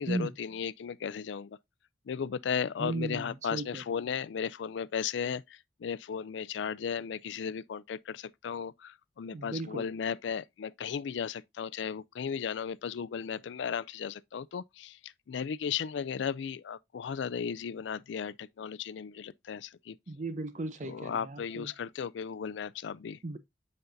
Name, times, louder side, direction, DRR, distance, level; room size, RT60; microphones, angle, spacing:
voice 1, 0.0-1.6 2.1-20.0 20.8-23.2, left 7 dB, 75° left, 0.4 m, -35 dB
voice 2, 2.8-3.8 9.3-9.8 20.1-21.7 23.2-23.4, right 2 dB, 40° right, 0.6 m, -36 dB
8.0 x 5.4 x 2.5 m
head